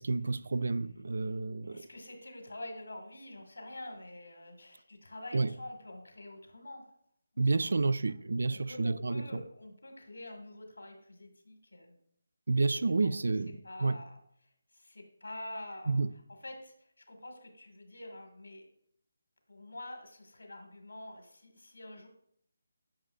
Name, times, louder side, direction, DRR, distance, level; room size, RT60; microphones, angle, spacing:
voice 1, 0.0-1.8 5.3-5.5 7.4-9.4 12.5-14.0 15.9-16.1, right 3 dB, 65° right, 0.4 m, -30 dB
voice 2, 1.6-6.8 7.3-7.7 8.1-8.2 8.5-12.0 13.0-13.1 13.6-14.2 14.4-16.0 16.4-18.6 19.5-22.1, left 1 dB, 85° left, 1.7 m, -47 dB
8.5 x 5.4 x 2.4 m
figure-of-eight pair, 155°, 0 cm